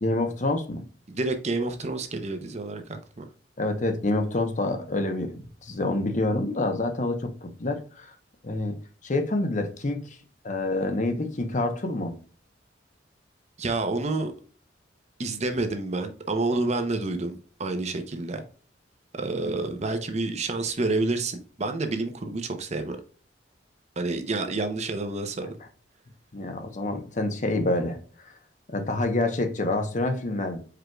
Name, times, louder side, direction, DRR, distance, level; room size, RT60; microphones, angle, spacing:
voice 1, 0.0-0.8 3.6-8.1 8.4-8.7 9.0-10.2 10.4-12.1 19.4-19.5 26.3-28.0 28.7-30.6, left 2 dB, 40° left, 0.8 m, -27 dB
voice 2, 1.1-3.2 13.6-14.3 15.2-18.4 19.1-23.0 24.0-25.5, right 2 dB, 35° right, 0.7 m, -29 dB
5.0 x 4.6 x 2.3 m
head